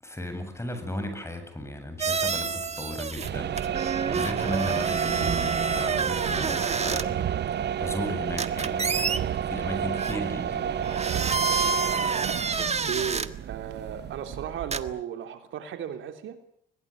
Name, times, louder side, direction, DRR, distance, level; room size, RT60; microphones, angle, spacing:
voice 1, 0.0-11.1, left 1 dB, 15° left, 8 dB, 8.0 m, -36 dB
sound 1, 2.0-3.3 3.6-7.0 8.4-9.2 9.9-10.2 10.8-13.3 14.7-14.8, right 4 dB, 35° right, 1.7 m, -28 dB
sound 2, 3.1-15.0, right 9 dB, 60° right, 0.9 m, -30 dB
voice 2, 12.6-16.4, right 9 dB, 80° right, 7 dB, 3.5 m, -35 dB
22.0 x 22.0 x 8.9 m, 0.67 s
cardioid pair, 90°, 20 cm